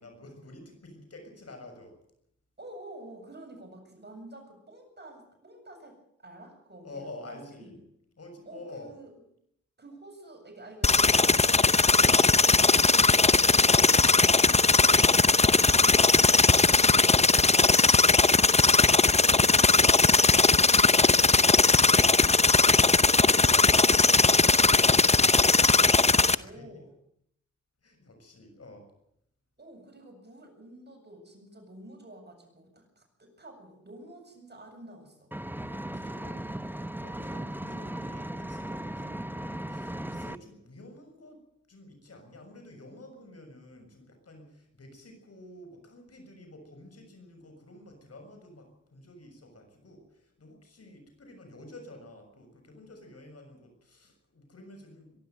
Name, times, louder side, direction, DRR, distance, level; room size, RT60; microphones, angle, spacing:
voice 1, 0.0-2.0 6.8-7.8 8.2-8.9 26.4-26.7 27.8-28.9 35.7-41.4 41.7-55.2, left 2 dB, 55° left, 5 dB, 6.9 m, -49 dB
voice 2, 2.6-7.7 8.5-9.1 9.8-17.2 19.3-19.7 23.2-26.9 29.6-35.7 38.9-39.2 40.1-40.4, right 1 dB, 35° right, 3 dB, 7.7 m, -49 dB
sound 1, 10.8-26.3, left 3 dB, 20° left, 0.8 m, -20 dB
Engine, 35.3-40.3, right 1 dB, 5° right, 1.0 m, -37 dB
23.0 x 12.0 x 9.3 m, 0.74 s
cardioid pair, 55°, 30 cm